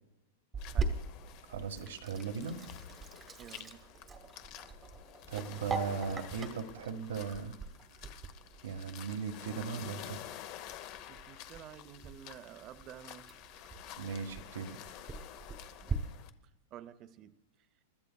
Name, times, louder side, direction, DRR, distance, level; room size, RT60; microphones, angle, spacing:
Sink (filling or washing), 0.5-15.9, right 4 dB, 15° right, 1.0 m, -42 dB
sound 1, 0.6-16.3, left 12 dB, 40° left, 0.7 m, -50 dB
voice 1, 0.7-1.0 3.4-3.9 11.1-13.4 15.8-16.1 16.7-17.3, right 10 dB, 30° right, 0.6 m, -51 dB
voice 2, 1.5-2.6 5.3-7.6 8.6-10.2 14.0-14.8, right 6 dB, 90° right, 1.5 m, -38 dB
29.0 x 12.5 x 2.3 m
supercardioid pair, 155°, 0 cm